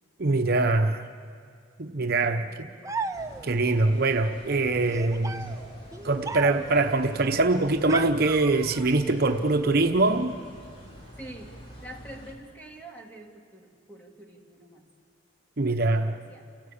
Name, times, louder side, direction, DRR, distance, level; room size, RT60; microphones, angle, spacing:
voice 1, 0.2-1.1 1.8-2.4 3.4-5.5 6.0-10.3 15.6-16.1, right 2 dB, 55° right, 6 dB, 0.9 m, -23 dB
voice 2, 2.0-3.2 11.2-14.9 15.6-16.5, right 1 dB, 10° left, 1 dB, 2.3 m, -47 dB
sound 1, 2.8-3.7 4.9-6.9 7.9-9.0, right 4 dB, 15° right, 0.6 m, -35 dB
sound 2, 3.1-12.4, equal, 30° left, 3.5 m, -46 dB
29.0 x 17.5 x 8.5 m, 2.2 s
head